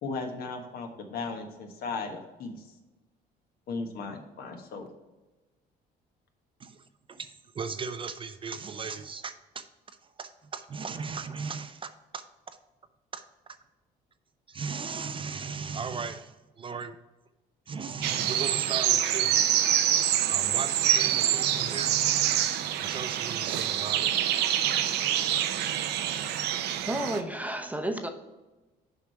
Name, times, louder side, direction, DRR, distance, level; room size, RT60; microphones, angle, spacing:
voice 1, 0.0-2.6 3.7-4.9, left 4 dB, 65° left, 4 dB, 1.3 m, -36 dB
voice 2, 7.1-9.6 10.2-12.6 13.1-13.2 14.5-16.2 16.6-17.0 17.7-19.4 19.9-24.1, right 5 dB, 30° right, 10 dB, 0.4 m, -37 dB
sound 1, 18.0-27.2, right 11 dB, 75° right, 0.6 m, -26 dB
voice 3, 26.9-28.1, right 1 dB, 10° right, 5 dB, 0.8 m, -31 dB
7.2 x 4.9 x 4.4 m, 1.1 s
cardioid pair, 110°, 17 cm